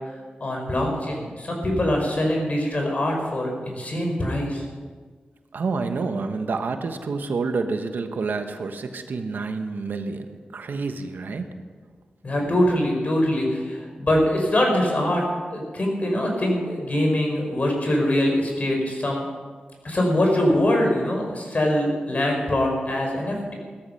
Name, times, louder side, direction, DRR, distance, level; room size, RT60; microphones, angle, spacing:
voice 1, 0.4-4.6 12.2-15.2 15.5-19.2 19.8-23.5, left 1 dB, 50° left, 1 dB, 4.9 m, -23 dB
voice 2, 5.5-10.3 10.5-11.4, right 4 dB, 80° right, 7 dB, 1.3 m, -28 dB
16.5 x 14.0 x 5.8 m, 1.5 s
wide cardioid pair, 75°, 3 cm